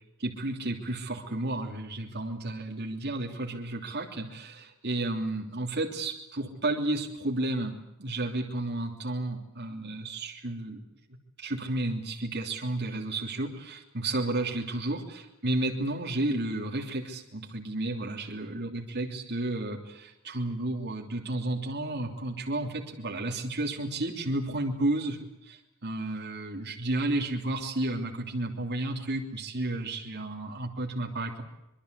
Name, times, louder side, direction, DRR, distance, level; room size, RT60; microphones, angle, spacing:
voice 1, 0.2-10.9 11.4-31.4, right 2 dB, 50° right, 0 dB, 3.1 m, -32 dB
25.0 x 22.5 x 8.3 m, 0.90 s
head